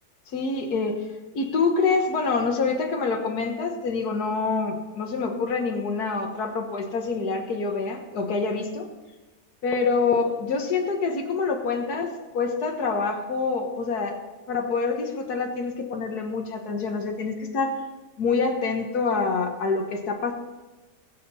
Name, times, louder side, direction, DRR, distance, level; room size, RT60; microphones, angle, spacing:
voice 1, 0.3-1.1 1.3-8.9 9.6-14.2 14.5-17.8 18.2-20.3, left 4 dB, 90° left, 4 dB, 1.9 m, -26 dB
22.0 x 7.6 x 4.2 m, 1.2 s
omnidirectional pair, 1.6 m